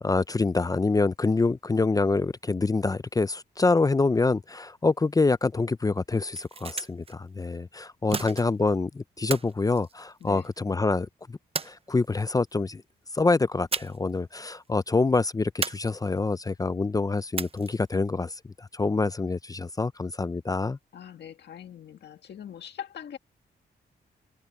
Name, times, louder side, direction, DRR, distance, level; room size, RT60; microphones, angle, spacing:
voice 1, 0.0-11.4 11.6-12.8 13.1-20.8, left 3 dB, 20° left, 0.5 m, -26 dB
sound 1, 6.3-7.1 8.1-8.8 9.3-10.6 11.5-12.3 13.7-14.2 14.4-14.6 15.6-16.3 17.4-17.9, right 5 dB, 35° right, 0.7 m, -34 dB
voice 2, 8.1-8.5 10.2-10.5 20.9-23.2, left 9 dB, 70° left, 2.0 m, -42 dB
cardioid pair, 95°, 18 cm